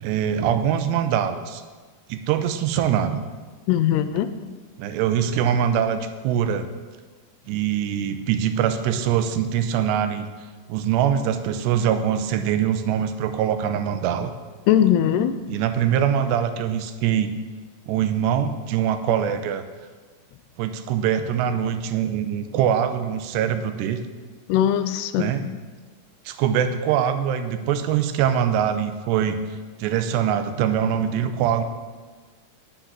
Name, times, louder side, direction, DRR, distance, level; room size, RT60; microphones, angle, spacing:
voice 1, 0.0-1.6 2.1-3.2 4.8-6.7 7.5-10.3 10.7-14.3 15.5-17.4 17.9-19.6 20.6-24.0 25.2-25.4 26.3-29.4 29.8-31.6, right 9 dB, 85° right, 9 dB, 2.9 m, -23 dB
voice 2, 3.7-4.3 14.7-15.4 24.5-25.4, left 10 dB, 85° left, 11 dB, 2.5 m, -20 dB
10.0 x 6.8 x 7.3 m, 1.4 s
omnidirectional pair, 4.8 m